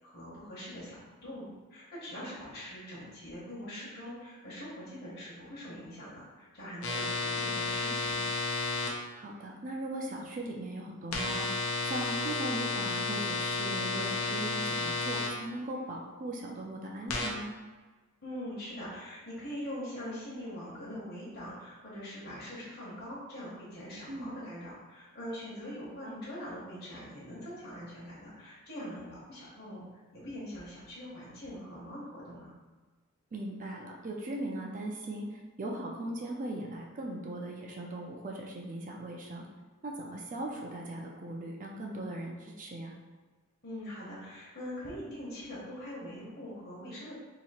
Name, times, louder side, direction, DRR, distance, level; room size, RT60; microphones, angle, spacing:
voice 1, 0.0-1.4 1.7-8.2 18.2-29.9 30.1-32.5 43.6-47.1, equal, 50° left, -8 dB, 1.1 m, -43 dB
sound 1, 6.8-8.9 11.1-15.3 17.1-17.3, left 3 dB, 80° left, 0.6 m, -32 dB
voice 2, 9.2-11.5 11.9-17.5 24.1-24.3 26.0-26.2 33.3-39.5 39.8-42.9, right 1 dB, 35° right, -1 dB, 0.4 m, -39 dB
2.9 x 2.8 x 4.2 m, 1.3 s
head